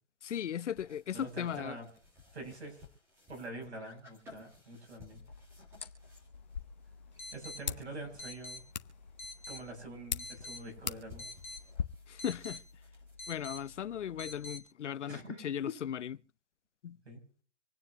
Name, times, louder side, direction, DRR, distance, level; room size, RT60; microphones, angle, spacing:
voice 1, 0.2-1.8 12.1-12.6 13.3-16.2 16.8-17.0, left 9 dB, 80° left, 0.6 m, -37 dB
sound 1, 0.7-9.3 9.6-9.7 9.9-13.2, left 3 dB, 5° right, 1.9 m, -59 dB
voice 2, 1.1-1.9 2.3-2.8 3.3-5.2 7.3-8.6 9.5-11.3 15.1-15.4 17.0-17.2, right 2 dB, 65° right, 7.9 m, -45 dB
sound 2, 5.1-14.6, left 2 dB, 10° left, 0.6 m, -49 dB
sound 3, 6.3-11.8, left 7 dB, 40° left, 0.8 m, -42 dB
26.5 x 9.5 x 2.9 m
hypercardioid pair, 170°, 35 cm